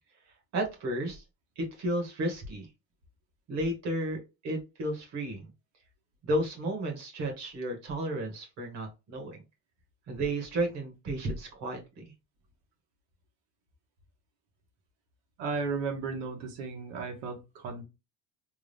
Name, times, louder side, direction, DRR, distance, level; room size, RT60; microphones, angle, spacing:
voice 1, 0.5-1.2 1.6-2.7 3.5-5.5 6.2-9.4 10.1-12.1, right 1 dB, 40° right, 2 dB, 1.6 m, -33 dB
voice 2, 15.4-17.8, right 4 dB, 85° right, 3 dB, 1.6 m, -34 dB
3.7 x 2.4 x 3.3 m, 0.25 s
cardioid pair, 165°, 39 cm